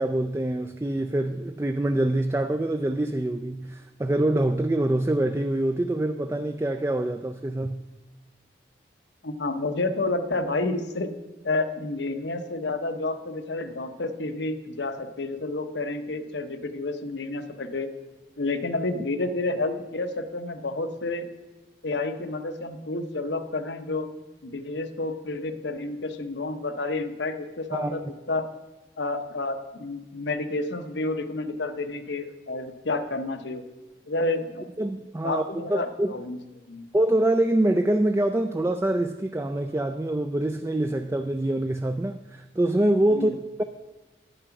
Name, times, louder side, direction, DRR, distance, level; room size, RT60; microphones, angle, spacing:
voice 1, 0.0-7.8 27.7-28.1 34.8-36.2 36.9-43.6, right 1 dB, 15° right, 0.3 m, -25 dB
voice 2, 9.2-11.1 11.4-17.9 18.4-21.3 21.8-24.1 24.4-28.0 28.3-28.5 29.0-33.6 34.1-34.7 35.2-36.4 36.7-36.9 43.1-43.3, left 2 dB, 80° left, 0.9 m, -30 dB
11.0 x 8.9 x 5.9 m
head